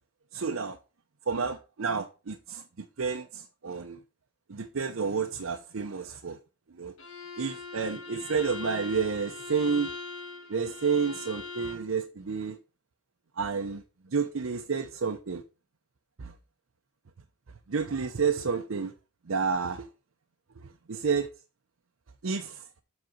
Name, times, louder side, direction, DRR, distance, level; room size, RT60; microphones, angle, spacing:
voice 1, 0.3-0.8 1.3-4.0 4.5-6.4 6.7-6.9 7.4-9.9 10.5-12.6 13.4-15.4 16.2-16.3 17.7-18.9 19.2-19.9 20.6-21.3 22.2-22.6, right 5 dB, 70° right, 0.6 m, -30 dB
Bowed string instrument, 7.0-11.9, left 4 dB, 65° left, 1.7 m, -41 dB
7.7 x 4.1 x 6.2 m
head